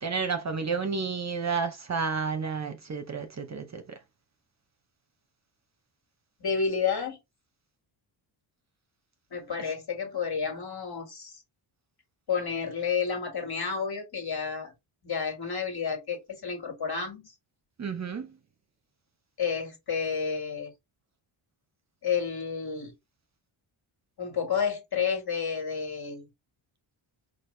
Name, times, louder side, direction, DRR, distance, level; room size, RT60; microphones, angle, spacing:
voice 1, 0.0-4.0 17.8-18.4, right 5 dB, 35° right, 0.7 m, -31 dB
voice 2, 6.4-7.2 9.3-11.4 12.3-14.7 15.0-17.3 19.4-20.7 22.0-22.9 24.2-26.3, left 6 dB, 50° left, 1.8 m, -30 dB
4.6 x 2.4 x 3.2 m
wide cardioid pair, 125°, 49 cm